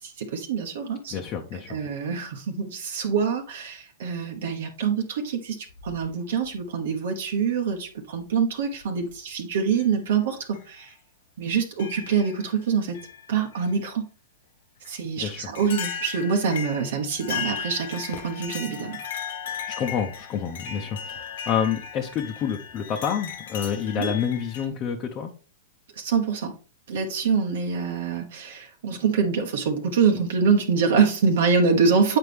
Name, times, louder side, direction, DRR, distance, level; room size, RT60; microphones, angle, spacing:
voice 1, 0.0-1.2 1.5-10.9 11.4-13.0 13.3-14.1 14.9-19.0 23.9-24.1 26.0-26.5 26.9-32.2, right 5 dB, 70° right, 2 dB, 1.1 m, -25 dB
voice 2, 1.1-1.8 15.2-15.5 19.5-25.3, left 8 dB, 35° left, 2 dB, 0.9 m, -28 dB
sound 1, 5.7-6.5 7.7-7.8 8.8-9.1 9.7-9.9 10.5-10.7 11.8-12.5 12.9-13.7 14.8-14.9 15.5-24.7, left 7 dB, 70° left, 1.3 m, -36 dB
8.0 x 4.4 x 3.4 m, 0.37 s
hypercardioid pair, 125°, 0 cm